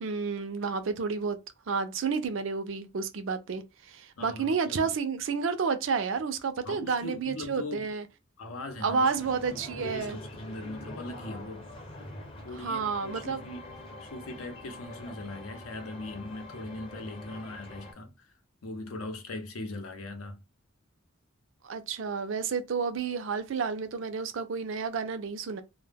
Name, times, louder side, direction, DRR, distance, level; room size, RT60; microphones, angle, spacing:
voice 1, 0.0-1.4 1.7-8.0 8.8-10.2 12.6-13.5 21.6-25.6, right 5 dB, 65° right, 0.4 m, -30 dB
voice 2, 4.2-4.9 6.6-7.9 8.4-9.1 9.5-11.7 12.4-18.3 18.6-20.4, left 2 dB, 90° left, 0.7 m, -40 dB
sound 1, 9.2-17.9, left 1 dB, 25° left, 0.6 m, -45 dB
2.1 x 2.0 x 3.3 m
head